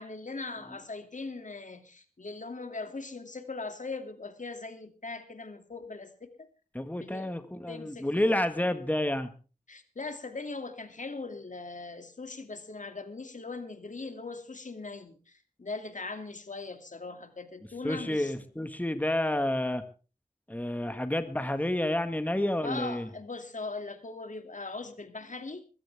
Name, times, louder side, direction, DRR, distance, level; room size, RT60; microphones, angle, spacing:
voice 1, 0.0-6.5 6.9-7.3 7.7-8.5 9.7-18.5 22.6-25.6, left 3 dB, 70° left, 8 dB, 2.5 m, -40 dB
voice 2, 6.7-9.3 17.8-19.8 20.5-23.1, left 1 dB, 10° left, 9 dB, 1.6 m, -29 dB
22.0 x 15.5 x 3.5 m, 0.36 s
wide cardioid pair, 60°, 14 cm